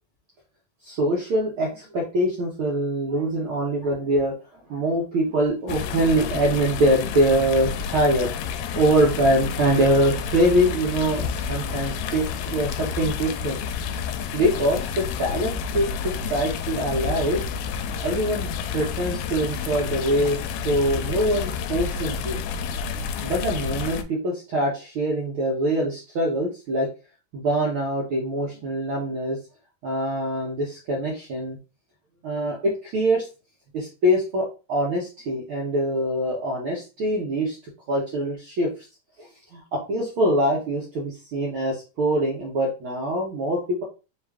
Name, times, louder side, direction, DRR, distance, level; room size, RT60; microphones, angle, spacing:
voice 1, 0.8-8.4 8.7-13.6 13.9-14.0 14.3-17.4 18.0-22.4 23.2-26.9 27.3-29.4 29.8-31.6 32.2-33.2 33.7-37.6 37.9-38.7 39.2-39.3 39.5-43.8, right 1 dB, 75° right, -3 dB, 1.2 m, -24 dB
sound 1, 5.7-24.0, left 6 dB, 85° left, 2.2 m, -30 dB
5.2 x 2.5 x 3.4 m, 0.31 s
omnidirectional pair, 3.8 m